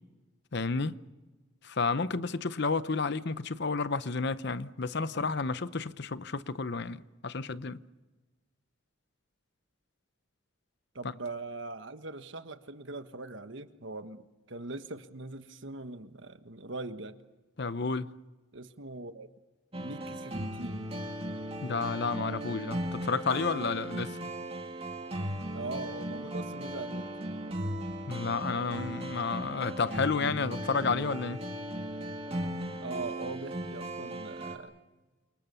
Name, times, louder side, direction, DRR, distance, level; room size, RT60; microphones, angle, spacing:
voice 1, 0.5-1.0 1.6-7.8 17.6-18.1 21.6-24.2 28.1-31.4, left 4 dB, 50° left, 0.8 m, -31 dB
voice 2, 10.9-17.2 18.5-19.3 19.8-20.9 25.5-27.1 32.8-34.7, right 3 dB, 60° right, 1.3 m, -41 dB
sound 1, 19.7-34.6, right 1 dB, 30° right, 2.2 m, -37 dB
29.0 x 25.0 x 6.9 m
head